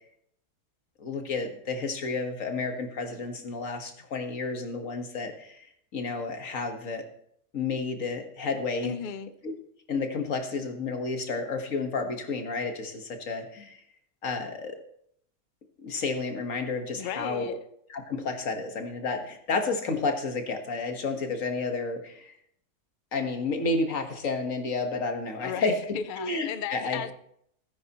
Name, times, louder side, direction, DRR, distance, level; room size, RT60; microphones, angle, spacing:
voice 1, 1.0-5.6 5.9-7.0 7.5-8.9 9.4-9.5 9.9-13.8 14.2-14.8 15.8-17.6 17.9-22.3 23.1-25.7 26.2-27.0, left 3 dB, 55° left, 5 dB, 1.8 m, -31 dB
voice 2, 8.8-9.3 17.0-17.6 25.4-27.1, left 8 dB, 75° left, 11 dB, 0.4 m, -35 dB
17.0 x 9.7 x 3.0 m, 0.69 s
omnidirectional pair, 1.7 m